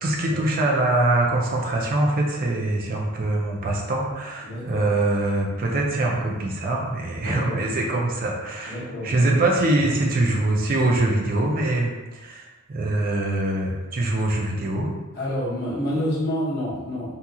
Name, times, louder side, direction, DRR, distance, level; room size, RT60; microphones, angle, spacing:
voice 1, 0.0-14.9, right 2 dB, 40° right, -1 dB, 0.4 m, -23 dB
voice 2, 4.4-4.9 7.2-7.6 8.7-9.3 9.9-10.0 15.1-17.1, equal, 45° left, -7 dB, 0.9 m, -28 dB
2.8 x 2.8 x 2.3 m, 1.2 s
head